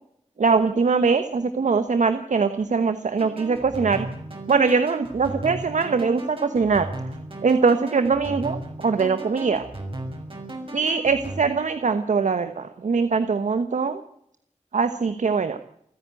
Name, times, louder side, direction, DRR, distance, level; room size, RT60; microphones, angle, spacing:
voice 1, 0.4-4.1 4.5-6.9 7.4-9.6 10.7-14.0 14.7-15.6, right 5 dB, 75° right, 10 dB, 1.2 m, -22 dB
sound 1, 3.2-11.4, right 1 dB, 45° right, 6.1 m, -36 dB
28.5 x 10.5 x 9.1 m, 0.72 s
wide cardioid pair, 85°, 13 cm